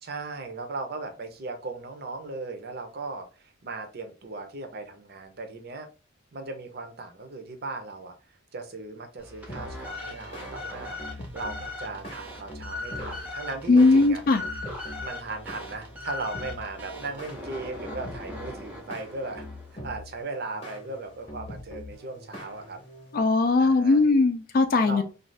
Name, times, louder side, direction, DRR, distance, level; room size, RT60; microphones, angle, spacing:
voice 1, 0.0-5.9 6.3-8.1 8.5-11.0 11.3-14.2 15.0-19.5 19.8-22.8 23.6-24.0 24.8-25.0, right 3 dB, 45° right, 5 dB, 0.6 m, -37 dB
sound 1, 9.2-19.8, left 2 dB, 5° right, 0.6 m, -39 dB
sound 2, 9.5-23.2, left 1 dB, 25° left, 0.8 m, -43 dB
voice 2, 13.7-14.4 23.1-25.0, left 3 dB, 40° left, 7 dB, 0.3 m, -19 dB
2.6 x 2.3 x 3.2 m, 0.34 s
head